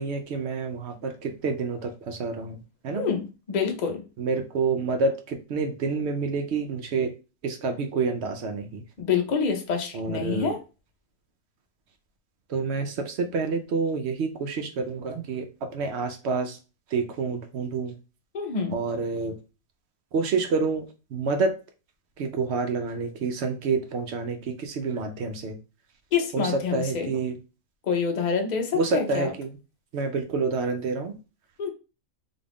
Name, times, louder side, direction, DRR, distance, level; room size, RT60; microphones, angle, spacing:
voice 1, 0.0-2.6 2.8-3.0 4.2-7.1 7.4-8.8 9.9-10.5 12.5-16.6 16.9-17.9 18.7-19.4 20.1-20.9 21.1-21.5 22.2-25.6 26.3-27.4 28.7-29.5 29.9-31.1, right 4 dB, 60° right, 6 dB, 0.7 m, -28 dB
voice 2, 2.9-4.0 9.0-10.6 18.3-18.8 26.1-27.1 27.8-29.3 31.6-31.7, left 6 dB, 45° left, 3 dB, 0.6 m, -27 dB
3.9 x 2.4 x 3.4 m, 0.31 s
omnidirectional pair, 1.6 m